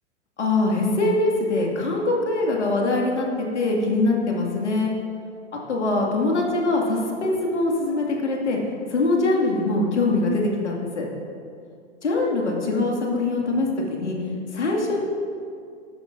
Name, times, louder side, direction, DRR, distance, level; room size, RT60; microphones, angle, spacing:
voice 1, 0.4-4.9 5.7-8.6 8.9-11.1 12.0-14.2 14.5-15.0, left 2 dB, 75° left, -1 dB, 2.3 m, -23 dB
12.5 x 12.0 x 2.6 m, 2.4 s
figure-of-eight pair, 105°, 35 cm